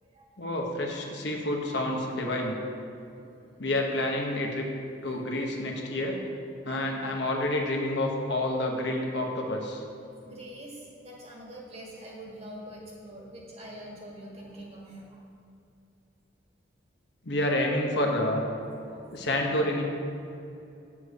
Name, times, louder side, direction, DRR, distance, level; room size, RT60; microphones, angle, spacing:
voice 1, 0.4-2.6 3.6-4.7 5.0-6.2 6.6-9.8 17.2-18.5 19.1-19.8, left 1 dB, 60° left, 1 dB, 1.1 m, -28 dB
voice 2, 10.3-15.3 18.8-19.0, right 1 dB, 30° right, -3 dB, 1.7 m, -44 dB
8.3 x 7.4 x 4.8 m, 2.7 s
head